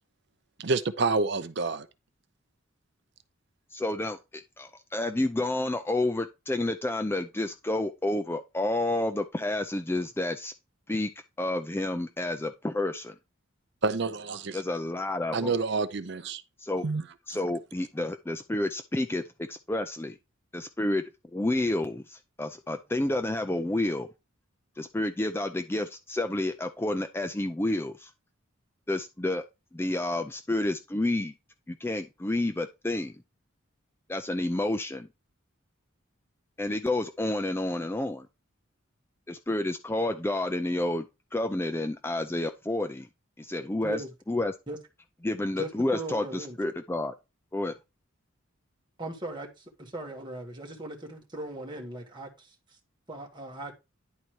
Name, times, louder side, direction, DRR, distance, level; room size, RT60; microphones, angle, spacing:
voice 1, 0.6-1.9 13.8-14.6 15.3-16.4 16.8-17.0, right 4 dB, 55° right, 0.6 m, -28 dB
voice 2, 3.7-10.5 10.9-11.1 11.4-13.1 14.5-15.5 16.6-16.8 17.3-20.2 20.5-21.0 21.3-24.1 24.8-28.1 28.9-29.4 29.7-31.3 31.7-33.1 34.1-35.1 36.6-38.3 39.3-41.1 41.3-43.1 43.4-44.5 45.2-47.1 47.5-47.7, left 1 dB, 10° left, 0.4 m, -30 dB
voice 3, 45.6-46.6 49.0-52.5 53.1-53.7, right 1 dB, 20° right, 1.7 m, -38 dB
10.5 x 4.1 x 4.6 m
head